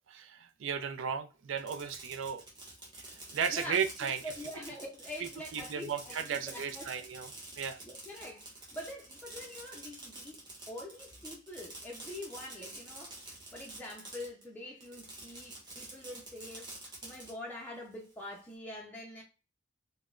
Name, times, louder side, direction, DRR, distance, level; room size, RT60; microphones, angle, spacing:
voice 1, 0.1-2.4 3.3-4.2 5.5-7.3 7.6-7.8, right 7 dB, 75° right, 0.4 m, -35 dB
Fireworks, 1.5-14.4 14.8-17.3, right 2 dB, 20° right, 1.0 m, -48 dB
voice 2, 3.5-3.8 4.2-6.9 7.8-10.4 10.7-13.1 13.5-16.7 17.0-19.2, left 1 dB, 10° left, 0.4 m, -45 dB
3.9 x 2.1 x 2.3 m
head